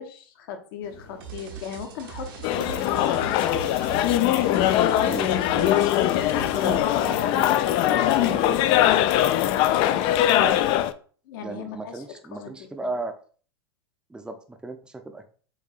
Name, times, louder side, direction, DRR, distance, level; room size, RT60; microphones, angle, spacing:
voice 1, 0.0-3.5 4.5-4.9 6.5-8.5 11.2-12.0 12.3-12.7, left 7 dB, 60° left, 6 dB, 0.9 m, -37 dB
sound 1, 0.8-5.9, left 2 dB, 80° left, 1.6 m, -48 dB
sound 2, 1.2-6.8, right 8 dB, 55° right, 1.0 m, -40 dB
sound 3, 2.4-10.9, left 12 dB, 40° left, 0.3 m, -21 dB
voice 2, 5.1-5.7 6.6-7.5 7.9-8.5 10.4-10.6 11.4-13.1 14.1-15.3, right 2 dB, 5° right, 6 dB, 0.6 m, -35 dB
7.4 x 2.6 x 2.5 m, 0.42 s
figure-of-eight pair, 95°, 13 cm